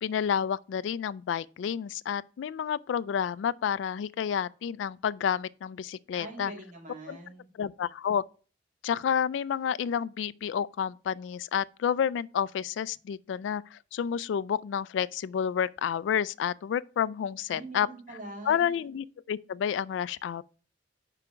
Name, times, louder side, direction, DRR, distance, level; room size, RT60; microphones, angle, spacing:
voice 1, 0.0-6.5 7.1-7.2 7.6-8.2 8.8-17.9 18.5-20.4, left 8 dB, 85° left, 0.3 m, -30 dB
voice 2, 6.1-7.5 17.5-18.8, right 2 dB, 45° right, 2.5 m, -43 dB
5.8 x 5.0 x 5.6 m
head